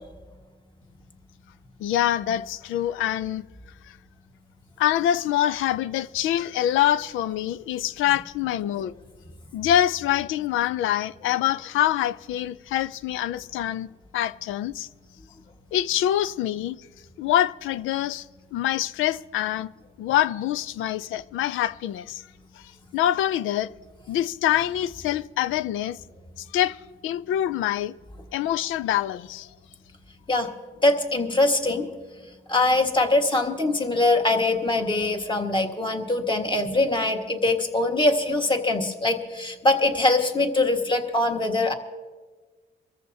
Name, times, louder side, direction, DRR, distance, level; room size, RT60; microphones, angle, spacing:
voice 1, 1.8-3.4 3.9-4.0 4.8-8.9 9.5-13.9 14.1-14.9 15.7-16.8 17.2-18.3 18.5-19.7 20.0-22.2 22.6-22.7 22.9-23.7 24.1-26.0 26.4-27.9 28.3-29.5, left 12 dB, 85° left, 0.5 m, -25 dB
voice 2, 30.8-31.9 32.5-41.7, left 2 dB, 25° left, 1.6 m, -22 dB
24.0 x 14.0 x 2.8 m
cardioid pair, 90°, 20 cm